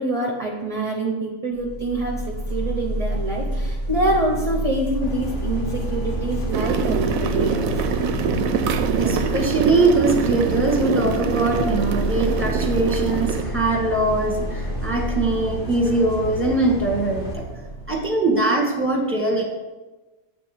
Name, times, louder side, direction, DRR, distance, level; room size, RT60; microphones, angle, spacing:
voice 1, 0.0-7.9, right 1 dB, 30° right, 0 dB, 0.8 m, -26 dB
sound 1, 1.6-18.2, right 1 dB, 15° left, 1.1 m, -30 dB
sound 2, 5.0-17.3, left 1 dB, 60° left, 1.7 m, -33 dB
sound 3, 6.5-13.4, right 7 dB, 85° right, 1.0 m, -25 dB
voice 2, 8.9-17.4 17.9-19.4, right 2 dB, 10° right, -1 dB, 1.4 m, -21 dB
8.3 x 3.5 x 6.4 m, 1.2 s
omnidirectional pair, 1.4 m